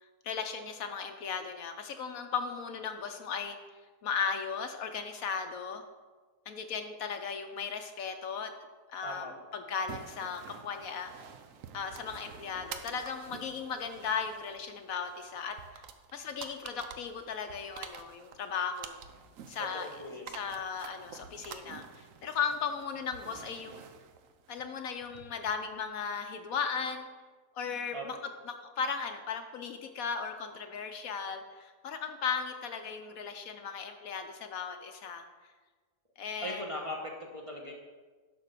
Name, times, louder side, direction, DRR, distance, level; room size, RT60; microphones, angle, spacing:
voice 1, 0.2-3.6 4.0-5.8 6.5-8.5 8.9-11.1 11.7-15.8 16.1-19.0 19.5-19.9 20.3-23.8 24.5-27.1 27.6-28.2 28.4-35.2 36.2-36.6, left 6 dB, 70° left, 6 dB, 1.0 m, -36 dB
voice 2, 9.0-9.3 19.6-20.4 27.9-28.2 36.4-37.7, equal, 25° right, -1 dB, 1.0 m, -39 dB
sound 1, 9.9-25.7, right 7 dB, 65° right, 1.0 m, -49 dB
11.5 x 4.3 x 6.6 m, 1.4 s
omnidirectional pair, 1.7 m